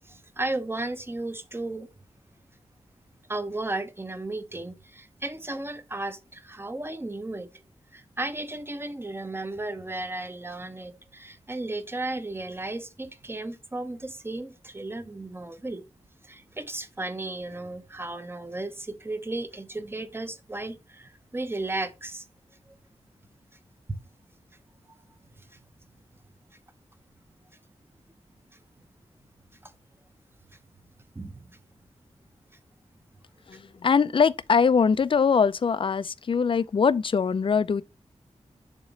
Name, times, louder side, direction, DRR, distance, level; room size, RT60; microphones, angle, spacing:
voice 1, 0.0-1.9 3.3-7.6 7.9-15.8 16.2-22.3 22.7-22.8 25.4-25.6 29.6-29.7 30.5-30.6 31.1-31.5 33.5-33.6, right 2 dB, 20° right, 0.7 m, -34 dB
voice 2, 33.5-37.8, left 6 dB, 45° left, 0.4 m, -22 dB
7.2 x 3.0 x 5.1 m
wide cardioid pair, 130°, 12 cm